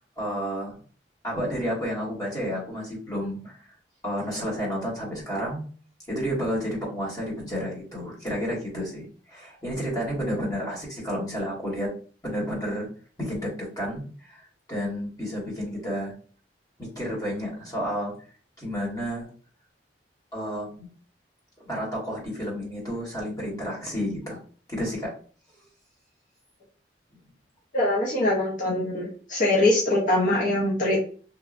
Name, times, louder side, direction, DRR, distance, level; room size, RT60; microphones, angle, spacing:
voice 1, 0.2-0.8 1.2-3.7 4.0-5.6 6.1-11.9 12.2-12.9 13.2-16.1 16.8-18.1 18.6-19.3 20.3-20.9 21.7-24.4 24.7-25.1, equal, 20° left, -4 dB, 1.2 m, -31 dB
voice 2, 27.7-31.0, left 1 dB, 45° left, -5 dB, 0.7 m, -23 dB
3.0 x 2.2 x 2.4 m, 0.41 s
head